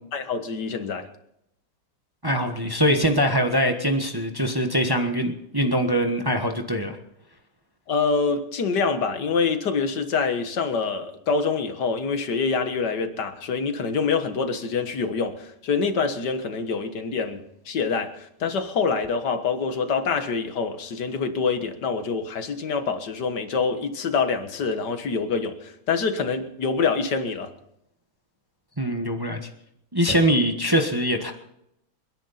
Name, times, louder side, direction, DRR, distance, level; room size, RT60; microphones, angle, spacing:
voice 1, 0.1-1.1 7.9-27.5, left 5 dB, 55° left, 8 dB, 2.0 m, -26 dB
voice 2, 2.2-7.0 28.8-29.4 29.9-31.3, equal, 15° right, 4 dB, 1.1 m, -23 dB
29.5 x 10.5 x 4.2 m, 0.80 s
omnidirectional pair, 2.3 m